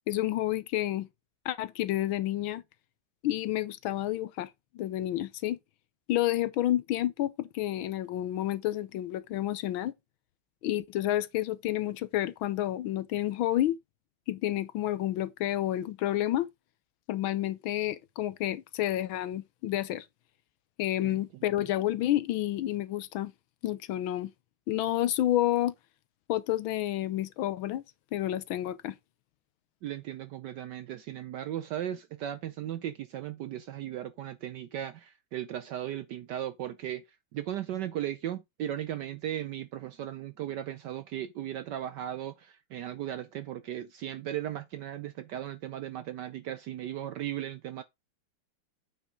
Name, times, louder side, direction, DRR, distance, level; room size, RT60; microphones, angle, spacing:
voice 1, 0.1-1.1 1.4-2.6 3.2-4.5 4.7-5.6 6.1-9.9 10.6-13.8 14.3-16.5 17.1-20.0 20.8-23.3 23.6-24.3 24.7-25.7 26.3-27.8 28.1-29.0, left 13 dB, 75° left, 1.4 m, -30 dB
voice 2, 29.8-37.0 37.3-47.8, right 11 dB, 75° right, 1.0 m, -37 dB
8.8 x 5.5 x 3.7 m
omnidirectional pair, 2.4 m